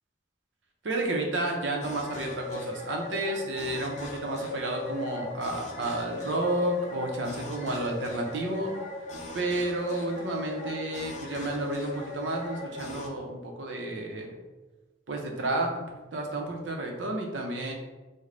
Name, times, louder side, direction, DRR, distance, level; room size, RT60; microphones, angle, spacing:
voice 1, 0.8-8.7 9.3-14.3 15.1-17.7, right 1 dB, 90° right, 1 dB, 0.6 m, -31 dB
sound 1, 1.8-13.1, left 2 dB, 40° left, 0.4 m, -38 dB
3.2 x 2.1 x 3.7 m, 1.2 s
head